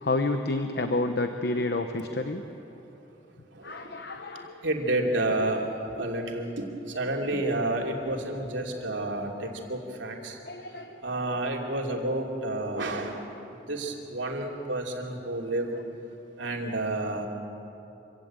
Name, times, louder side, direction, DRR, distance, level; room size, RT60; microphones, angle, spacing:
voice 1, 0.0-2.4 3.6-4.5 10.5-11.0, left 2 dB, 60° left, 6 dB, 0.9 m, -29 dB
voice 2, 3.5-4.0 4.6-5.7 5.9-6.7 6.9-10.4 11.0-13.2 13.7-15.7 16.4-17.3, right 2 dB, 85° right, 1 dB, 2.9 m, -30 dB
25.5 x 16.5 x 8.9 m, 2.9 s
head